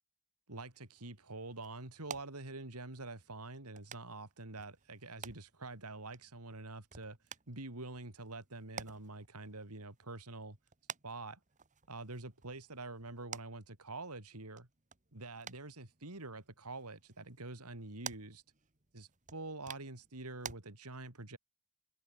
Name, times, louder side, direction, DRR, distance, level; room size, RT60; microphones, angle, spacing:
voice 1, 0.5-7.2 7.5-10.6 11.0-11.4 11.9-14.7 15.1-18.4 18.9-21.4, right 2 dB, 90° right, 3.5 m, -46 dB
sound 1, 0.7-20.6, right 7 dB, 35° right, 2.1 m, -53 dB
open air
head